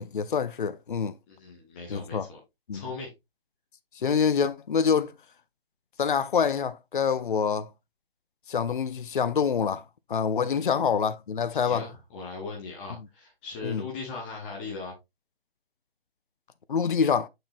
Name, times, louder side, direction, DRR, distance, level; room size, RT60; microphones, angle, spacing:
voice 1, 0.0-1.1 1.9-2.3 2.7-2.8 4.0-5.1 6.0-7.7 8.5-9.8 10.1-11.9 13.6-13.8 16.7-17.3, left 6 dB, 55° left, 0.6 m, -26 dB
voice 2, 1.3-2.4 2.7-3.1 10.3-10.8 11.5-14.9, left 4 dB, 10° left, 0.8 m, -39 dB
6.7 x 6.1 x 2.5 m
figure-of-eight pair, 145°, 31 cm